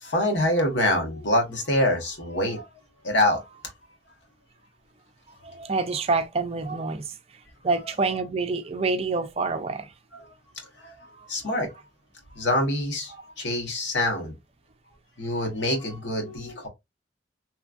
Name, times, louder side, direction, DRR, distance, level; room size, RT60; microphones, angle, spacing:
voice 1, 0.0-2.7 3.0-3.4 10.1-10.3 10.8-11.7 12.3-14.3 15.2-16.7, left 1 dB, 85° left, 1.1 m, -25 dB
voice 2, 5.4-7.1 7.6-9.9, right 3 dB, 35° right, 0.4 m, -27 dB
3.0 x 2.4 x 2.4 m
head